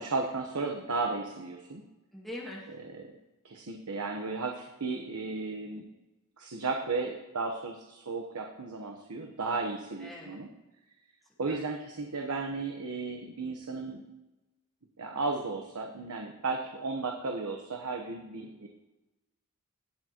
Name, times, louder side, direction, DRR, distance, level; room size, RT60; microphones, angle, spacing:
voice 1, 0.0-1.8 2.9-3.0 3.4-5.8 6.4-10.5 11.4-14.0 15.0-18.7, right 3 dB, 90° right, 2 dB, 1.0 m, -34 dB
voice 2, 2.1-2.8 10.0-10.4 11.5-11.7, left 1 dB, ahead, -5 dB, 1.6 m, -43 dB
18.0 x 7.2 x 3.0 m, 1.0 s
head